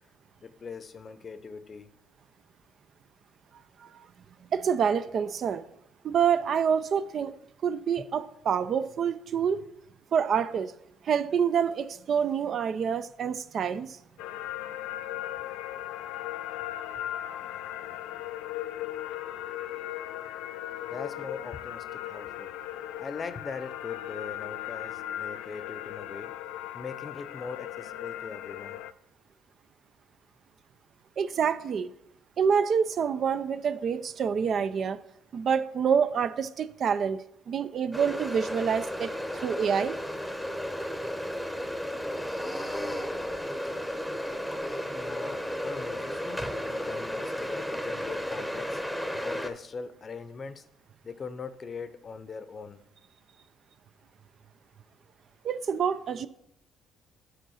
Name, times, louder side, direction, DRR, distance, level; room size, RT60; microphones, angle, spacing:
voice 1, 0.4-1.9 20.8-22.5 23.0-26.3 26.7-28.8 44.9-50.7 51.0-52.8, left 5 dB, 40° left, 0.6 m, -41 dB
voice 2, 4.5-5.6 6.0-7.3 7.6-9.6 10.1-10.7 11.0-14.0 31.2-31.9 32.4-35.0 35.3-37.2 37.5-39.1 39.4-40.0 55.4-56.3, right 7 dB, 55° right, 0.4 m, -27 dB
sound 1, 14.2-28.9, left 13 dB, 85° left, 0.3 m, -37 dB
sound 2, 37.9-49.5, equal, ahead, 0.8 m, -33 dB
7.9 x 3.8 x 6.3 m
supercardioid pair, 80°, 0 cm